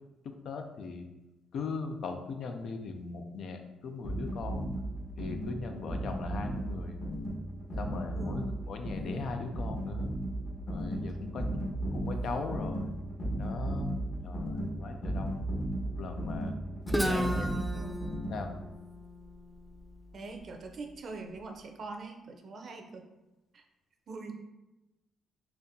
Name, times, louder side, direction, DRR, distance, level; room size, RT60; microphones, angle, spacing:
voice 1, 0.2-1.1 1.5-4.7 5.2-7.0 7.8-10.1 10.7-11.4 11.9-13.0 13.4-14.0 14.2-15.5 16.0-16.5 17.1-17.5 18.3-18.6, left 4 dB, 65° left, 5 dB, 0.4 m, -39 dB
sound 1, 4.0-18.7, right 1 dB, 45° left, 1.1 m, -35 dB
voice 2, 8.1-8.6 11.4-11.6 17.0-18.2 20.1-23.1 23.5-23.6 24.1-24.4, right 3 dB, 50° right, 4 dB, 0.5 m, -43 dB
Guitar, 16.9-20.7, equal, ahead, 0.3 m, -35 dB
4.1 x 2.8 x 2.6 m, 1.0 s
cardioid pair, 90°, 0 cm